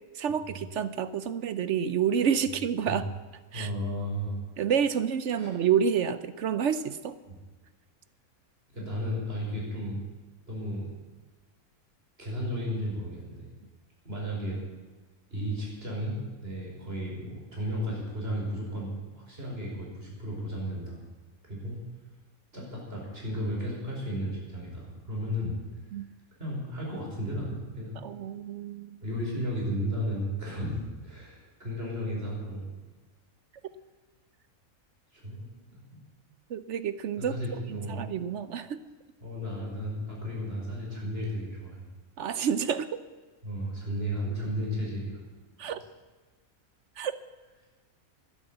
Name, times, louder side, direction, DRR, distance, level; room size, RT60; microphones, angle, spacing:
voice 1, 0.2-3.0 3.5-3.7 4.6-7.1 25.9-26.1 28.0-29.0 36.5-37.3 37.7-38.8 42.2-43.0 45.6-45.8 47.0-47.1, right 8 dB, 65° right, 13 dB, 0.9 m, -29 dB
voice 2, 3.5-4.4 5.3-5.5 7.3-7.4 8.7-10.0 10.5-10.9 12.2-13.5 14.0-14.6 15.3-21.0 21.4-21.8 22.5-25.6 26.4-28.0 29.0-32.7 35.1-35.8 37.2-38.0 39.2-41.9 43.4-45.2 45.6-45.8, equal, 40° right, -3 dB, 5.2 m, -34 dB
12.5 x 10.5 x 7.9 m, 1.3 s
omnidirectional pair, 1.5 m